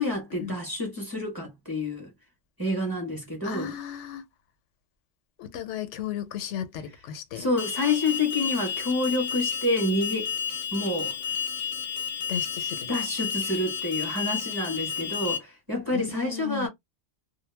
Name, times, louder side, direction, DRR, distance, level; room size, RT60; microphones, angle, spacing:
voice 1, 0.0-2.1 2.6-3.7 7.3-10.4 10.7-11.2 12.9-16.7, left 2 dB, 20° right, 0.7 m, -28 dB
voice 2, 3.4-4.2 5.4-7.5 12.3-12.9 15.9-16.7, left 9 dB, 90° left, 0.9 m, -35 dB
Alarm, 7.6-15.4, left 7 dB, 50° left, 0.5 m, -31 dB
2.2 x 2.0 x 3.1 m
omnidirectional pair, 1.2 m